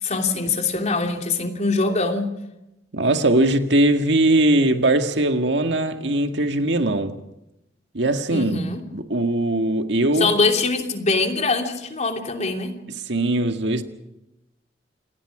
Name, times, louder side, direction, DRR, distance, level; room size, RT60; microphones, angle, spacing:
voice 1, 0.0-2.3 8.3-8.8 10.2-12.7, left 3 dB, 40° left, 2.9 m, -23 dB
voice 2, 2.9-7.2 7.9-8.6 8.9-10.4 13.1-13.8, right 1 dB, 70° right, 1.9 m, -20 dB
28.5 x 19.0 x 5.0 m
head